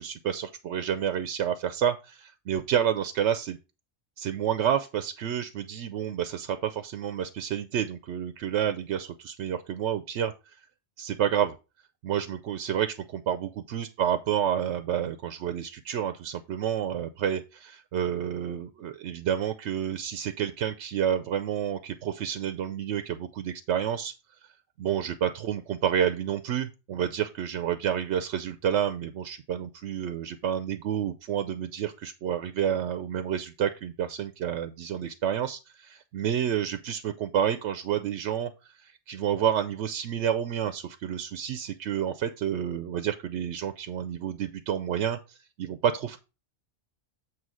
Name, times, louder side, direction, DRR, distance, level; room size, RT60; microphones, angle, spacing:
voice 1, 0.0-3.6 4.2-10.3 11.0-11.5 12.0-24.1 24.8-38.5 38.8-46.2, right 9 dB, 85° right, 10 dB, 0.9 m, -29 dB
7.7 x 3.1 x 6.1 m, 0.30 s
omnidirectional pair, 1.1 m